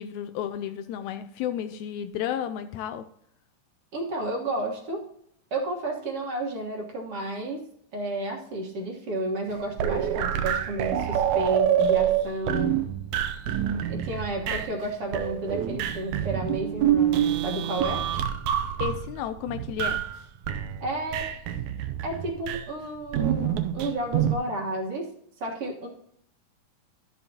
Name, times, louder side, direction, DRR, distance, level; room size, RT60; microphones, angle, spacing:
voice 1, 0.0-3.1 14.4-14.6 18.8-20.0, left 10 dB, 80° left, 10 dB, 1.8 m, -32 dB
voice 2, 3.9-5.0 5.5-7.6 7.9-12.8 13.9-18.0 20.8-21.2 22.0-25.1 25.4-25.9, right 2 dB, 55° right, 1 dB, 2.2 m, -32 dB
sound 1, 9.5-14.9 15.1-20.2 20.4-22.6 23.1-24.4, right 10 dB, 75° right, 2.0 m, -27 dB
12.5 x 7.0 x 2.8 m, 0.70 s
omnidirectional pair, 3.5 m